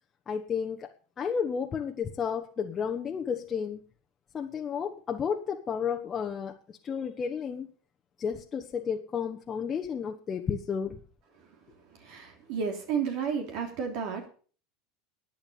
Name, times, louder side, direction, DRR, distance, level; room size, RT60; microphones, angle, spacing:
voice 1, 0.3-3.8 4.3-7.7 8.2-11.0, left 7 dB, 30° left, 2 dB, 1.2 m, -32 dB
voice 2, 11.9-14.3, right 6 dB, 60° right, 3 dB, 3.3 m, -32 dB
12.0 x 9.1 x 6.9 m, 0.41 s
hypercardioid pair, 95°, 0 cm